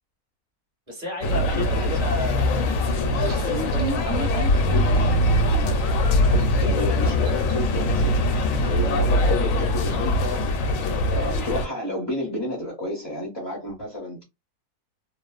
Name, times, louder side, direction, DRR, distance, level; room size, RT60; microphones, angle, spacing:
voice 1, 0.9-4.9, left 2 dB, 30° right, 1.5 m, -34 dB
sound 1, 1.2-11.7, left 1 dB, 70° left, 0.9 m, -22 dB
voice 2, 1.5-2.0 4.7-4.9 6.3-8.3 8.5-14.2, left 1 dB, 30° left, 0.5 m, -31 dB
Laughter, 2.9-7.5, right 4 dB, 70° right, 1.0 m, -34 dB
3.0 x 2.0 x 2.3 m
omnidirectional pair, 1.6 m